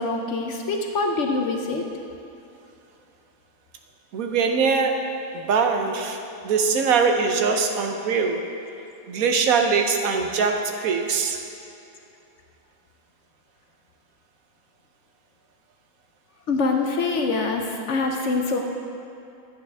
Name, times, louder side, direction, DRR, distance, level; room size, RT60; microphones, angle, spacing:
voice 1, 0.0-1.8 16.5-18.6, left 3 dB, 60° left, 3 dB, 0.9 m, -24 dB
voice 2, 4.1-5.0 5.3-8.4 9.1-11.4, right 5 dB, 70° right, 4 dB, 1.1 m, -22 dB
11.0 x 8.5 x 3.4 m, 2.7 s
omnidirectional pair, 1.6 m